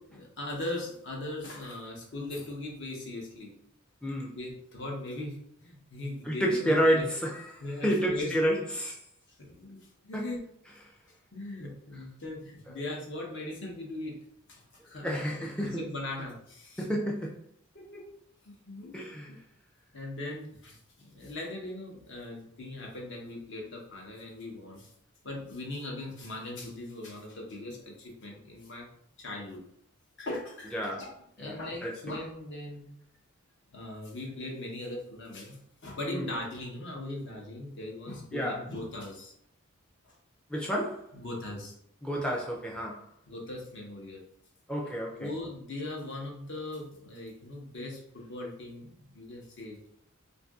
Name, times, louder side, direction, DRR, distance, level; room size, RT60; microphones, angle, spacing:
voice 1, 0.1-3.5 4.3-7.1 7.6-8.3 9.3-9.8 10.0-10.4 11.3-14.2 14.5-15.2 15.6-16.9 17.7-18.1 18.4-19.0 19.3-19.4 19.9-24.9 25.2-28.9 29.2-29.6 30.2-31.1 31.4-32.9 33.7-39.3 40.0-40.1 41.1-41.7 43.3-44.2 45.2-49.8, left 1 dB, 55° left, 0.8 m, -39 dB
voice 2, 4.0-4.4 6.3-9.0 10.1-10.2 15.0-15.8 16.8-17.4 18.9-19.3 30.7-31.1 31.4-31.9 36.1-36.3 38.3-38.6 40.5-41.1 42.0-43.1 44.7-45.3, equal, 5° left, 0.4 m, -30 dB
2.6 x 2.5 x 3.5 m
head